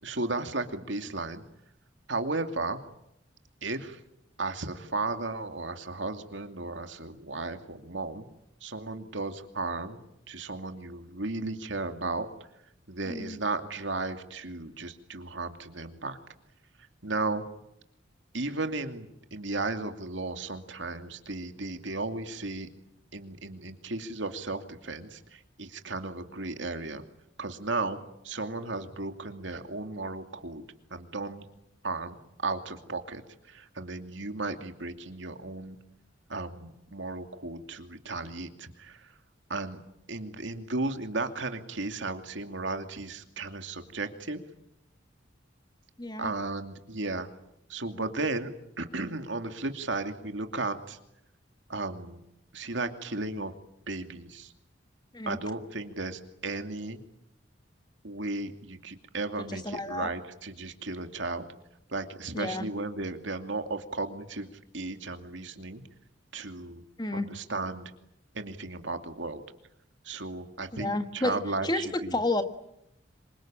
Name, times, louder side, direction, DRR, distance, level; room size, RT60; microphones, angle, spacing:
voice 1, 0.0-1.4 2.1-2.8 3.6-4.0 4.4-8.3 8.6-10.0 10.3-12.3 12.9-16.2 17.0-17.4 18.3-22.7 23.1-27.0 27.4-28.0 28.2-31.5 31.8-32.2 32.4-35.8 36.3-39.2 39.5-39.8 40.1-44.4 46.2-47.3 47.7-48.5 48.8-51.0 51.7-52.2 52.5-53.5 53.9-54.5 55.3-57.0 58.0-61.5 61.9-65.8 66.3-66.8 67.1-67.9 68.3-69.4 70.0-72.2, right 3 dB, 70° right, 7 dB, 2.6 m, -35 dB
voice 2, 46.0-46.3 55.1-55.4 59.5-60.1 62.3-62.6 67.0-67.3 70.7-71.4 71.6-71.8 72.1-72.4, left 2 dB, 20° left, 9 dB, 1.5 m, -30 dB
26.5 x 24.5 x 9.0 m, 0.80 s
head